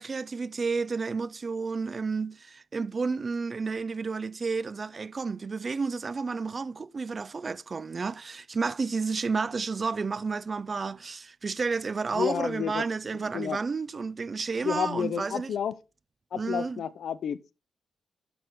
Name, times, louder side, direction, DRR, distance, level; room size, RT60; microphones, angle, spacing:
voice 1, 0.0-15.5 16.3-16.8, right 4 dB, 40° right, 0.4 m, -31 dB
voice 2, 12.1-12.8 13.3-13.6 14.6-15.8 16.3-17.5, left 8 dB, 75° left, 0.6 m, -30 dB
11.0 x 5.9 x 3.5 m
cardioid pair, 80°, 0 cm